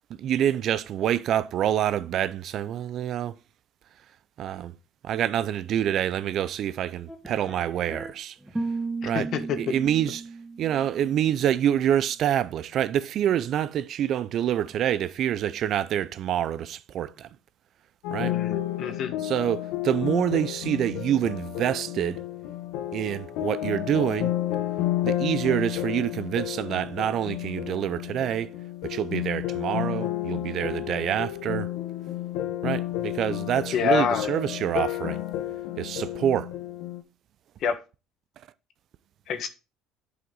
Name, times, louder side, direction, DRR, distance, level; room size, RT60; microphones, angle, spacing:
voice 1, 0.1-3.4 4.4-4.7 5.0-8.4 9.0-9.3 9.5-10.2 10.6-17.3 18.1-18.4 19.2-22.2 22.9-24.3 25.0-28.5 28.8-31.7 32.6-35.2 35.8-36.5, right 10 dB, 60° right, 0.5 m, -26 dB
sound 1, 7.1-8.1 8.5-11.4, right 3 dB, 10° right, 2.6 m, -35 dB
voice 2, 9.1-9.6 18.3-19.1 33.7-34.2 37.6-37.8 39.3-39.5, left 7 dB, 60° left, 1.5 m, -26 dB
sound 2, 18.0-37.0, left 13 dB, 80° left, 1.2 m, -31 dB
11.0 x 5.0 x 3.9 m
supercardioid pair, 85°, 0 cm